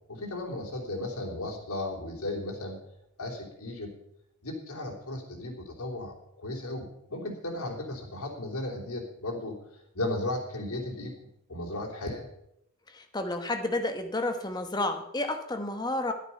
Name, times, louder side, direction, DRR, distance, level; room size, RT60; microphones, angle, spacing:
voice 1, 0.1-2.8 3.2-3.9 4.4-9.6 9.9-11.1 11.5-12.3, left 1 dB, 80° left, -1 dB, 3.2 m, -35 dB
voice 2, 12.9-16.1, left 2 dB, 20° left, 6 dB, 1.0 m, -31 dB
11.5 x 9.9 x 5.7 m, 0.77 s
head